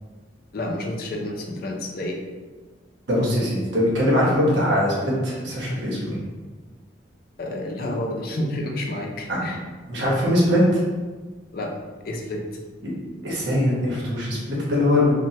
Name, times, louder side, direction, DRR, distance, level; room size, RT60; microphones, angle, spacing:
voice 1, 0.5-2.2 7.4-9.6 11.5-11.7 12.0-12.4, left 1 dB, 50° left, 1 dB, 0.4 m, -29 dB
voice 2, 3.1-6.2 9.3-9.4 9.9-10.8 13.2-15.1, left 1 dB, 70° right, -4 dB, 0.9 m, -21 dB
3.1 x 2.2 x 2.7 m, 1.3 s
head